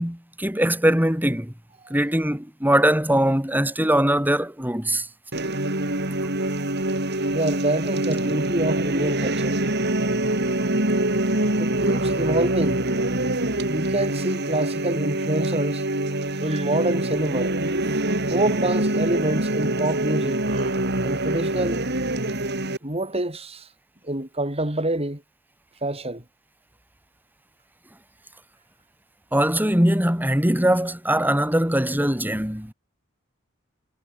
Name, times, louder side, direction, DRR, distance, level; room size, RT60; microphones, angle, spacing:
voice 1, 0.0-1.5 1.9-5.1 29.3-32.7, right 1 dB, 10° right, 5.9 m, -21 dB
sound 1, 5.3-22.8, right 1 dB, 50° right, 5.3 m, -25 dB
voice 2, 7.3-9.6 10.6-10.8 11.6-12.8 13.7-15.8 16.4-17.5 18.3-20.7 21.0-21.8 22.8-23.7 24.0-25.2 25.8-26.2, right 1 dB, 30° right, 5.2 m, -26 dB
head